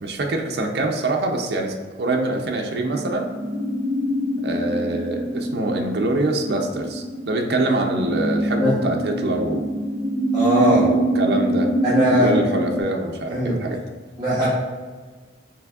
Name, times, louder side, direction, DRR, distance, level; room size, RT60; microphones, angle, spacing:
voice 1, 0.0-3.3 4.4-9.6 10.8-11.7 12.1-13.8, right 2 dB, 65° right, 2 dB, 0.5 m, -25 dB
sound 1, 2.8-12.8, right 1 dB, 40° right, 1.3 m, -25 dB
voice 2, 10.3-10.9 11.8-12.4 13.3-13.6 14.2-14.5, equal, 20° right, -10 dB, 0.9 m, -19 dB
6.0 x 3.3 x 2.3 m, 1.5 s
head